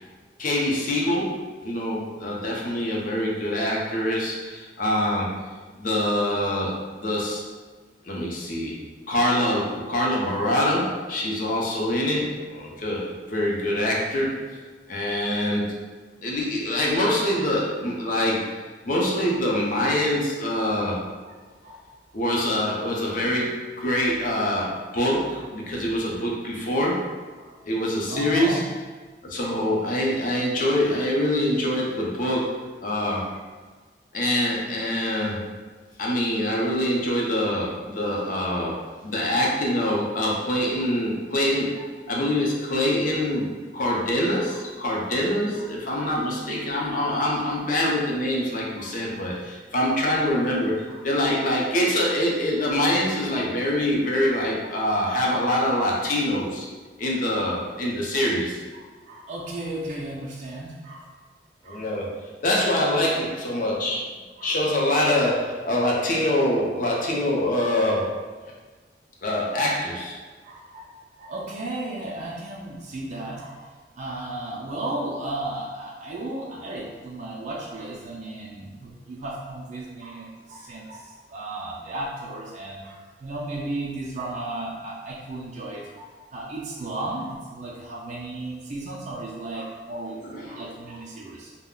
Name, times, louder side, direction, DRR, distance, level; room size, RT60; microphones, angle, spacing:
voice 1, 0.4-5.3 5.8-7.4 8.0-8.8 9.1-14.4 14.9-15.8 16.2-18.6 18.8-21.0 22.1-27.0 27.6-28.6 29.2-32.6 32.8-33.3 34.1-35.4 36.0-41.8 42.1-43.5 43.7-56.7 57.0-58.6 61.6-64.1 64.4-68.2 69.2-70.1 90.2-90.6, left 1 dB, 50° left, -3 dB, 0.6 m, -25 dB
voice 2, 21.6-21.9 24.5-24.7 25.3-25.4 27.4-27.6 28.1-28.6 29.4-29.5 33.3-33.4 38.4-39.4 40.5-40.9 41.7-41.9 44.5-44.6 45.6-45.7 46.0-46.1 48.8-49.0 50.9-51.0 54.3-54.7 55.7-55.8 57.4-57.5 58.7-61.2 61.6-61.9 64.4-64.5 70.4-73.7 74.0-91.5, right 2 dB, 45° right, -3 dB, 0.4 m, -35 dB
2.3 x 2.1 x 3.6 m, 1.4 s
head